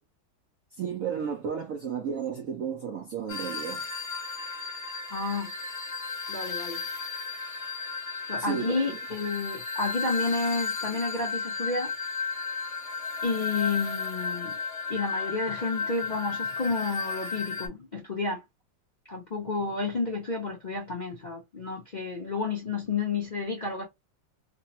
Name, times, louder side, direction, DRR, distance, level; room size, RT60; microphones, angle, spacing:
voice 1, 0.7-3.8 8.4-8.9, right 7 dB, 75° right, 0.7 m, -33 dB
sound 1, 3.3-17.7, left 5 dB, 40° left, 1.0 m, -34 dB
voice 2, 5.1-5.5 6.3-6.8 8.3-11.9 13.2-14.6 14.9-18.4 19.1-23.9, left 3 dB, 65° left, 0.4 m, -31 dB
3.3 x 2.1 x 2.7 m
omnidirectional pair, 2.1 m